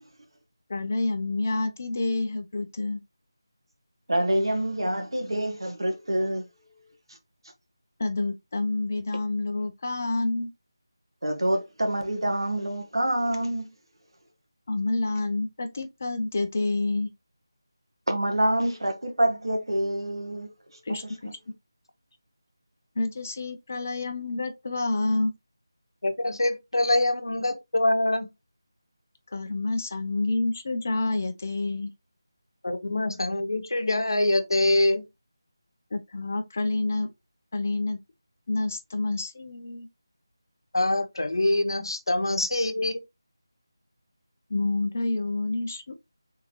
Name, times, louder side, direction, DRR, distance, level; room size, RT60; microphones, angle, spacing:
voice 1, 0.7-3.0 8.0-10.5 14.7-17.1 20.9-21.0 21.5-21.6 23.0-25.3 29.3-31.9 35.9-37.1 37.5-38.0 38.5-39.9 44.5-45.9, left 2 dB, 30° left, 0.6 m, -28 dB
voice 2, 4.1-6.4 11.2-13.7 18.1-20.5 20.9-21.0, right 1 dB, 85° right, 1.5 m, -26 dB
voice 3, 26.0-28.3 32.6-35.0 40.7-43.0, left 1 dB, 70° left, 1.1 m, -24 dB
3.8 x 3.8 x 3.0 m
figure-of-eight pair, 175°, 2 cm